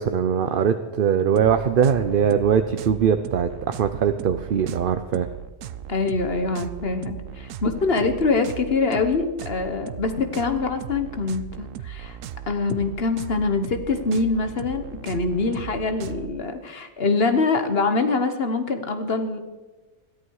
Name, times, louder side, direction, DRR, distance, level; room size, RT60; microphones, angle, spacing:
voice 1, 0.0-5.3, right 7 dB, 50° right, 9 dB, 0.8 m, -21 dB
sound 1, 1.3-16.3, right 10 dB, 85° right, 1.1 m, -37 dB
voice 2, 5.9-12.2 12.5-19.4, left 3 dB, 50° left, 8 dB, 1.5 m, -24 dB
21.0 x 14.0 x 4.8 m, 1.2 s
omnidirectional pair, 1.3 m